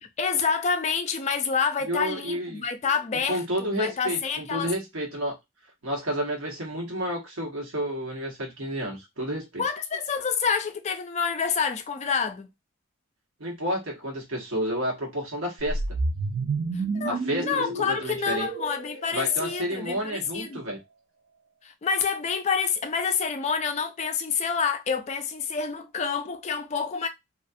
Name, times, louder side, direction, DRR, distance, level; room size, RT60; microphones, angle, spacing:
voice 1, 0.0-4.7 9.6-12.5 16.7-20.6 21.6-27.1, left 6 dB, 30° left, 0.3 m, -28 dB
voice 2, 1.8-2.6 3.3-5.3 5.8-9.6 13.4-15.8 17.0-18.5 19.1-20.8, equal, 70° right, 1.1 m, -30 dB
sound 1, 15.6-19.9, right 3 dB, 55° right, 0.4 m, -31 dB
2.4 x 2.3 x 2.5 m
head